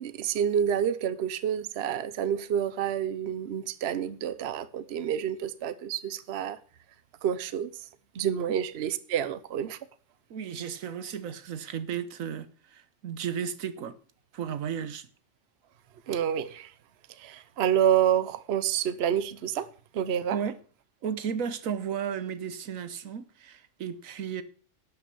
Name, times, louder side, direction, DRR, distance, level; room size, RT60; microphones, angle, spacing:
voice 1, 0.0-6.6 7.2-7.7 8.1-9.8 16.1-16.7 17.2-19.7 19.9-20.4, right 9 dB, 55° right, 0.9 m, -28 dB
voice 2, 10.3-14.0 14.3-15.1 20.3-20.6 21.0-24.4, right 8 dB, 80° right, 1.2 m, -34 dB
12.0 x 6.0 x 7.0 m
omnidirectional pair, 1.4 m